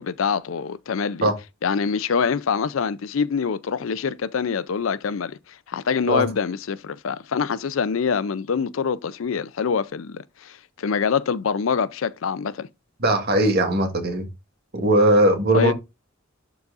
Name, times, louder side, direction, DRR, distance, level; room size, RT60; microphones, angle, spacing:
voice 1, 0.0-1.3 1.6-5.4 5.7-12.7 15.5-15.7, left 6 dB, 75° left, 0.5 m, -25 dB
voice 2, 13.0-14.3 14.7-15.7, right 1 dB, 50° right, 1.7 m, -19 dB
11.5 x 4.0 x 2.5 m
head